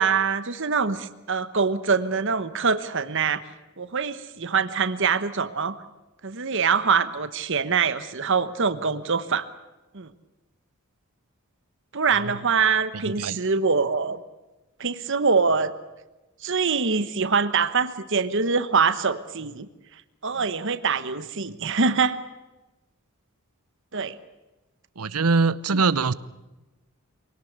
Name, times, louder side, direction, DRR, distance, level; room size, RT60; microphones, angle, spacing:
voice 1, 0.0-3.4 3.8-5.8 6.2-9.5 9.9-10.1 11.9-14.2 14.8-15.7 16.4-19.7 20.2-22.2 23.9-24.2, right 5 dB, 55° right, 12 dB, 1.1 m, -24 dB
voice 2, 12.9-13.4 20.4-20.5 25.0-26.1, right 4 dB, 85° right, 17 dB, 0.9 m, -23 dB
24.5 x 18.0 x 8.2 m, 1.1 s
head